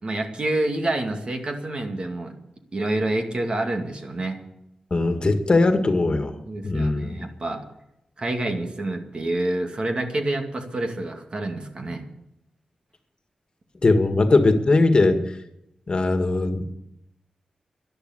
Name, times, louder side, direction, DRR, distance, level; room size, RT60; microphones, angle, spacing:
voice 1, 0.0-2.3 2.7-4.4 6.5-7.6 8.2-12.1, right 2 dB, 45° right, 4 dB, 2.3 m, -27 dB
voice 2, 4.9-6.4 6.6-7.3 13.8-15.2 15.9-16.6, left 2 dB, 45° left, 7 dB, 1.8 m, -20 dB
11.5 x 11.5 x 7.9 m, 0.81 s
cardioid pair, 60°, 2 cm